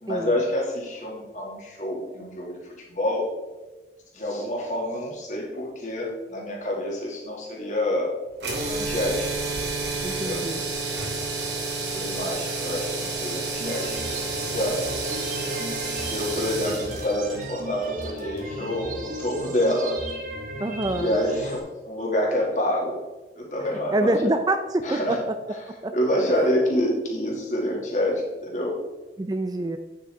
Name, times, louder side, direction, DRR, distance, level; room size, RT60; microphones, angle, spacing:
voice 1, 0.0-3.3 4.1-8.1 8.7-9.3 10.1-10.5 11.8-14.2 14.5-14.9 15.8-20.0 20.9-23.0 23.4-24.1 24.8-25.6 25.9-28.8, left 1 dB, 45° left, -2 dB, 2.1 m, -27 dB
sound 1, 8.4-18.5, right 3 dB, 75° right, 2.2 m, -30 dB
voice 2, 10.0-10.6 20.6-21.2 23.9-25.0 25.8-25.9 29.2-29.8, right 1 dB, 20° right, 7 dB, 0.4 m, -26 dB
sound 2, 13.6-21.6, right 1 dB, 45° right, 1.2 m, -35 dB
9.1 x 7.3 x 3.5 m, 1.1 s
head